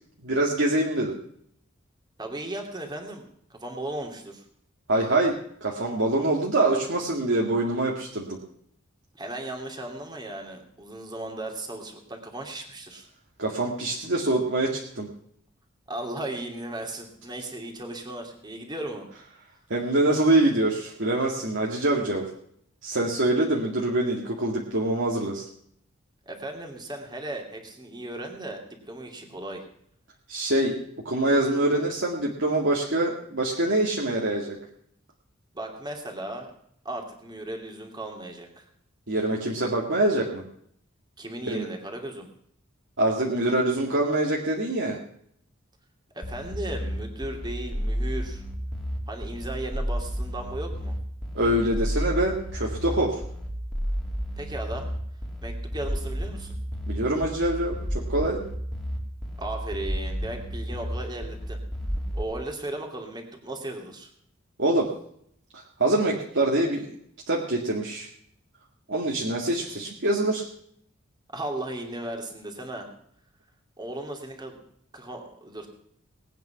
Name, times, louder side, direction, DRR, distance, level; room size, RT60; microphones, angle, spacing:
voice 1, 0.2-1.1 4.9-5.3 5.6-8.4 13.4-15.1 19.7-22.3 22.8-25.4 30.3-30.7 31.1-34.6 39.1-40.4 41.5-41.7 43.0-45.0 51.3-53.1 56.9-57.8 58.1-58.4 64.6-64.9 65.8-66.9 67.3-68.1 68.9-70.5, right 1 dB, 65° right, -2 dB, 2.2 m, -24 dB
voice 2, 2.2-4.4 9.1-13.1 15.9-19.1 26.3-29.6 35.5-36.5 36.8-38.6 41.2-42.3 46.1-48.4 49.1-51.0 54.4-54.9 55.4-56.6 59.4-61.6 62.1-64.1 71.3-72.9 73.8-74.6 74.9-75.7, right 1 dB, 20° right, 2 dB, 2.7 m, -36 dB
sound 1, 46.2-62.2, equal, ahead, 2.5 m, -31 dB
19.5 x 9.2 x 5.8 m, 0.67 s
head